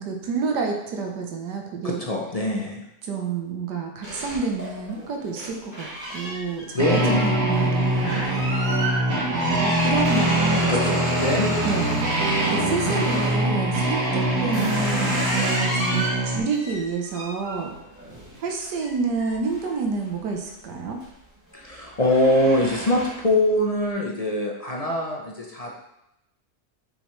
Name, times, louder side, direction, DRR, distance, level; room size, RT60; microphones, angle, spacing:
voice 1, 0.0-2.0 3.0-8.2 9.6-10.7 11.6-12.2 12.5-17.7 18.4-21.0, right 4 dB, 85° right, 2 dB, 1.6 m, -29 dB
voice 2, 1.8-2.8 6.7-7.4 10.7-11.5 21.5-25.7, left 1 dB, 40° left, -1 dB, 0.5 m, -23 dB
sound 1, 4.0-13.4 14.0-20.4 20.8-21.2 21.5-23.4, right 1 dB, 10° right, 2.7 m, -32 dB
sound 2, 6.8-16.4, right 1 dB, 65° right, 2.1 m, -23 dB
6.7 x 6.1 x 3.2 m, 0.85 s
omnidirectional pair, 1.8 m